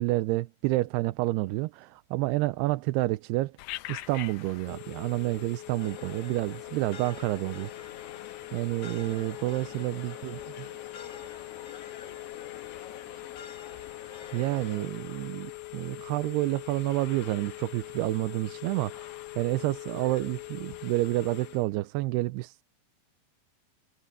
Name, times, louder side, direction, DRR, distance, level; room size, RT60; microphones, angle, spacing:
voice 1, 0.0-3.6 3.9-7.7 8.5-10.4 14.3-22.6, right 19 dB, 90° right, 2.7 m, -29 dB
Telephone, 3.6-21.7, left 19 dB, 80° left, 2.3 m, -43 dB
sound 1, 5.8-14.9, left 8 dB, 55° left, 1.8 m, -46 dB
voice 2, 9.9-13.8, right 9 dB, 55° right, 5.8 m, -59 dB
omnidirectional pair, 4.6 m